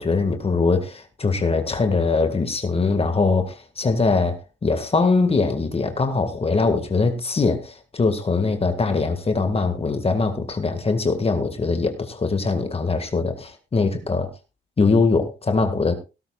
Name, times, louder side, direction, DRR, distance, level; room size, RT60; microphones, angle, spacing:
voice 1, 0.0-4.4 4.6-14.3 14.8-15.9, left 4 dB, 30° left, 7 dB, 1.9 m, -22 dB
17.5 x 12.5 x 2.4 m, 0.29 s
cardioid pair, 90°, 20 cm